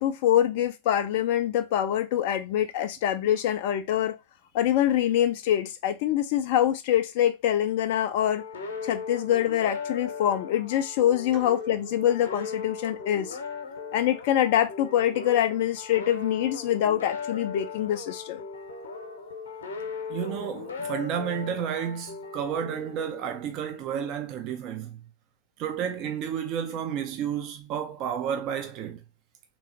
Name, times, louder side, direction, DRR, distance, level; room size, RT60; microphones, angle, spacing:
voice 1, 0.0-4.2 4.5-8.4 8.8-13.4 13.9-18.4, left 11 dB, 50° left, 0.5 m, -25 dB
sound 1, 8.2-23.6, left 5 dB, 70° left, 1.0 m, -38 dB
voice 2, 20.1-25.0 25.6-29.0, right 8 dB, 40° right, 0.6 m, -31 dB
3.7 x 3.0 x 2.8 m
figure-of-eight pair, 90°, 0 cm